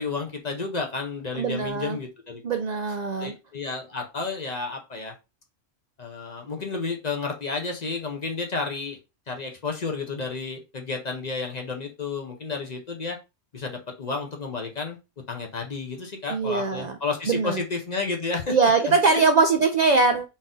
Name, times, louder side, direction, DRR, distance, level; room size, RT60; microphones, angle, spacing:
voice 1, 0.0-2.4 3.2-5.2 6.0-9.0 9.3-13.2 13.5-15.0 15.3-19.2, left 4 dB, 40° left, 0.8 m, -31 dB
voice 2, 1.3-2.0 2.4-3.3 16.3-17.0 17.3-17.6 18.5-20.3, right 4 dB, 65° right, 0.4 m, -22 dB
4.2 x 2.6 x 3.6 m
omnidirectional pair, 1.2 m